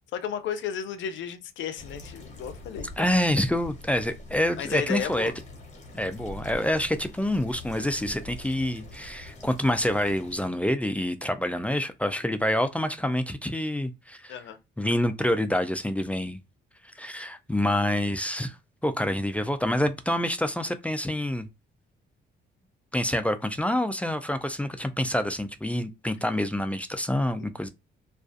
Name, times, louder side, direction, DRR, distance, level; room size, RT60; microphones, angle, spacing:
voice 1, 0.1-2.9 4.6-5.3 14.3-14.6 27.4-27.5, left 8 dB, 70° left, 0.5 m, -33 dB
sound 1, 1.8-10.5, left 1 dB, 35° left, 1.2 m, -44 dB
voice 2, 3.0-5.3 5.9-14.4 14.8-16.4 17.0-18.6 18.8-21.5 22.9-27.7, left 1 dB, 5° left, 0.3 m, -27 dB
2.4 x 2.3 x 2.5 m
cardioid pair, 90°, 20 cm